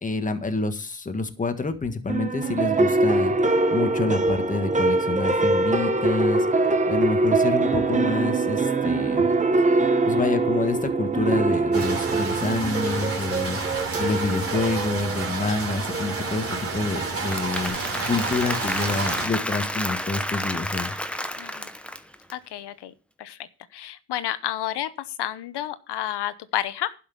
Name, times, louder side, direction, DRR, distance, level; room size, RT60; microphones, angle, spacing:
voice 1, 0.0-3.3 3.7-6.5 6.9-9.3 10.0-13.6 14.0-17.8 18.1-20.9, left 3 dB, 20° left, 8 dB, 1.5 m, -27 dB
sound 1, 2.1-17.7, right 2 dB, 20° right, 1.1 m, -23 dB
sound 2, 11.7-19.3, right 3 dB, 35° right, 3.3 m, -30 dB
Applause / Crowd, 17.0-22.3, equal, 5° left, 0.9 m, -30 dB
voice 2, 21.4-21.7 22.3-22.9 23.2-26.9, left 12 dB, 75° left, 15 dB, 1.0 m, -31 dB
11.5 x 6.2 x 7.0 m, 0.35 s
cardioid pair, 135°, 41 cm